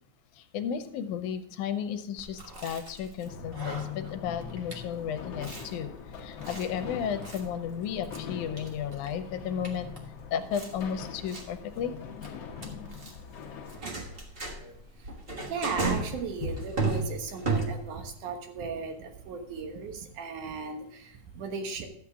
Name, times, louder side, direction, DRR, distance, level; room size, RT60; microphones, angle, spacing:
voice 1, 0.4-5.9 6.2-9.9 10.3-12.0, left 8 dB, 85° left, 9 dB, 2.3 m, -33 dB
Chewing mastication, 2.2-18.1, right 3 dB, 40° right, 0.8 m, -36 dB
sound 1, 3.3-13.8, left 7 dB, 65° left, 1.9 m, -42 dB
voice 2, 15.5-21.9, right 4 dB, 90° right, 5 dB, 2.8 m, -36 dB
12.5 x 7.9 x 3.6 m, 0.71 s
omnidirectional pair, 3.4 m